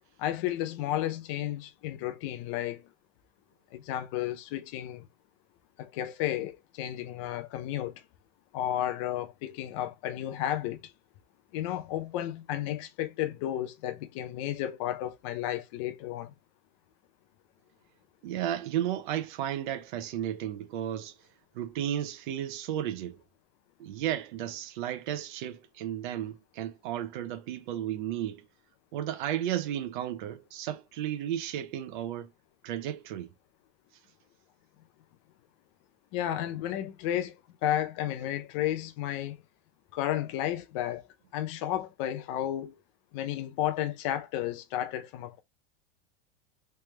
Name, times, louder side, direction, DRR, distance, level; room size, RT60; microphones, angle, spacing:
voice 1, 0.2-2.9 3.7-5.0 5.8-8.0 8.5-10.9 11.5-16.3 36.1-39.4 39.9-41.1 41.3-42.8 43.1-45.4, left 12 dB, 35° left, 0.5 m, -32 dB
voice 2, 18.2-21.1 21.5-23.2 23.8-28.5 28.9-32.3 32.6-33.3, right 11 dB, 55° right, 0.8 m, -33 dB
3.3 x 3.2 x 3.2 m
supercardioid pair, 175°, 29 cm